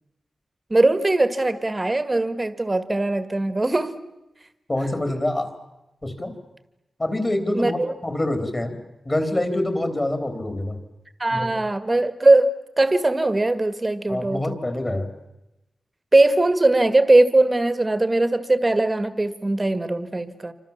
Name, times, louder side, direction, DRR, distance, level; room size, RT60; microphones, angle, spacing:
voice 1, 0.7-3.9 7.5-7.9 11.2-14.6 16.1-20.5, right 2 dB, 15° right, 12 dB, 1.8 m, -20 dB
voice 2, 4.7-5.5 6.0-6.3 7.0-8.8 9.1-10.8 11.3-11.5 14.1-15.1, left 1 dB, 20° left, 7 dB, 3.7 m, -25 dB
28.5 x 25.5 x 7.4 m, 0.94 s
wide cardioid pair, 165°, 0 cm